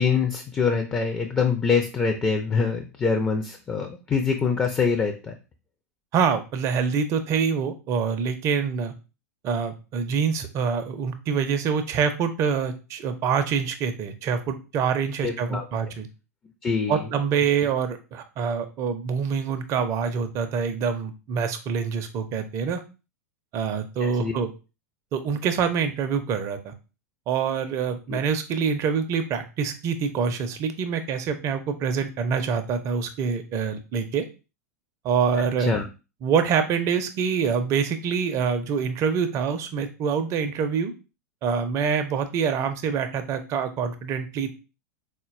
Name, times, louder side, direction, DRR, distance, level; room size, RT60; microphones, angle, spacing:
voice 1, 0.0-5.3 15.2-15.6 16.6-17.1 24.0-24.3 28.1-28.2 35.3-35.9, left 5 dB, 15° left, 3 dB, 0.4 m, -25 dB
voice 2, 6.1-8.9 9.4-16.1 16.9-22.8 23.5-24.5 25.1-26.7 27.3-34.2 35.0-35.7 36.2-40.9 41.4-44.6, right 6 dB, 35° right, 8 dB, 0.5 m, -25 dB
3.8 x 2.1 x 2.4 m, 0.31 s
figure-of-eight pair, 90°, 9 cm